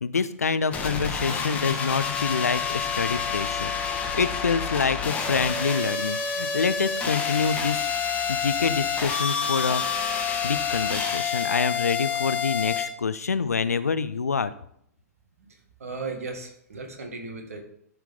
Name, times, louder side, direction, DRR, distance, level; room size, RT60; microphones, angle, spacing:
voice 1, 0.0-7.9 8.3-9.8 10.4-14.5, left 5 dB, 70° left, 13 dB, 0.5 m, -26 dB
sound 1, 0.7-12.9, left 6 dB, 15° left, 1.2 m, -28 dB
voice 2, 15.5-17.6, right 4 dB, 60° right, 3 dB, 1.8 m, -36 dB
13.0 x 4.4 x 3.6 m, 0.68 s
figure-of-eight pair, 110°, 9 cm